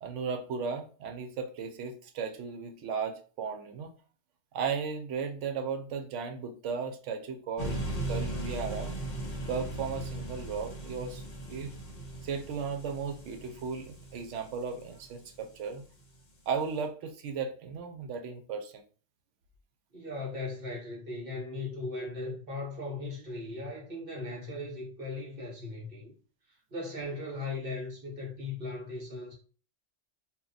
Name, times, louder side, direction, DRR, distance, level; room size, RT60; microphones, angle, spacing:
voice 1, 0.0-3.9 4.5-8.9 9.5-11.2 11.5-11.7 12.2-15.8 16.5-18.8, right 5 dB, 85° right, 0.9 m, -35 dB
sound 1, 7.6-15.6, right 1 dB, 45° left, 0.8 m, -38 dB
voice 2, 19.9-26.1 26.7-29.3, left 2 dB, 50° right, 1.3 m, -38 dB
2.8 x 2.2 x 3.8 m
omnidirectional pair, 1.2 m